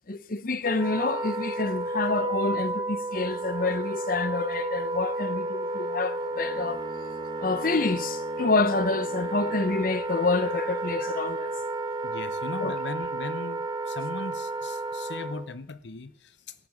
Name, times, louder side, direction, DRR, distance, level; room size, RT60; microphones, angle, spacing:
voice 1, 0.1-6.8 7.4-11.5 12.6-12.8, left 3 dB, 50° left, 0.9 m, -28 dB
Wind instrument woodwind instrument, 0.7-15.5, right 2 dB, 20° right, 1.4 m, -32 dB
Bowed string instrument, 6.2-10.1, right 1 dB, 25° left, 2.2 m, -46 dB
voice 2, 12.0-16.5, left 3 dB, 80° left, 0.8 m, -38 dB
17.0 x 9.4 x 7.3 m
head